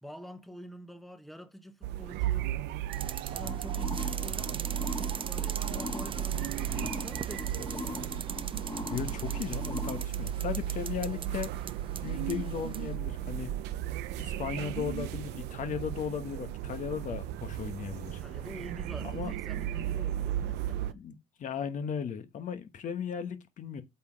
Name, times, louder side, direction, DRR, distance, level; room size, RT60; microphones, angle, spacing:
voice 1, 0.0-2.5 3.3-8.1 18.2-21.0, equal, ahead, 1.0 m, -47 dB
sound 1, 1.8-20.9, right 12 dB, 80° right, 0.6 m, -35 dB
sound 2, 2.9-12.9, right 7 dB, 30° right, 0.5 m, -41 dB
sound 3, 3.4-10.0, left 2 dB, 20° left, 1.9 m, -41 dB
voice 2, 8.9-11.7 12.0-13.5 14.2-18.2 19.0-19.3 20.9-23.8, left 7 dB, 50° left, 1.1 m, -36 dB
8.3 x 3.9 x 6.2 m
cardioid pair, 110°, 17 cm